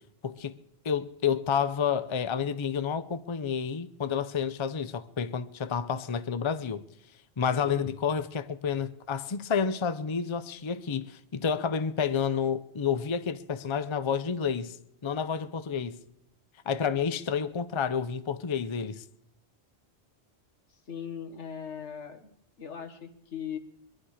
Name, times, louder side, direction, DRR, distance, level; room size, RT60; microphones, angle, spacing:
voice 1, 0.2-0.6 0.8-6.8 7.4-14.8 15.0-16.0 16.7-19.0, left 7 dB, 35° left, 0.5 m, -30 dB
voice 2, 20.7-23.6, left 8 dB, 85° left, 1.8 m, -40 dB
22.5 x 11.5 x 4.9 m
omnidirectional pair, 1.2 m